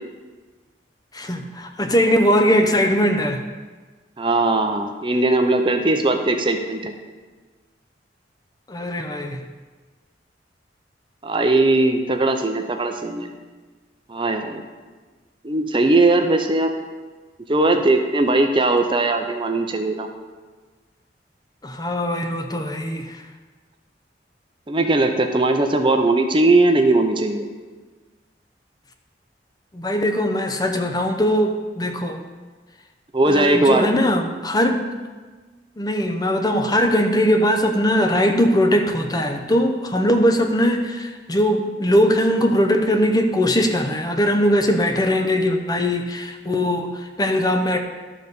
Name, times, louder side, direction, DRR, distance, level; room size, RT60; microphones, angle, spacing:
voice 1, 1.1-3.4 8.7-9.4 21.6-23.2 29.7-32.2 33.2-34.8 35.8-47.8, equal, 20° left, 5 dB, 0.7 m, -20 dB
voice 2, 4.2-6.9 11.2-13.3 14.1-14.6 15.4-16.7 17.5-20.1 24.7-27.5 33.1-33.9, right 2 dB, 30° right, 5 dB, 0.6 m, -19 dB
12.0 x 4.1 x 6.7 m, 1.4 s
head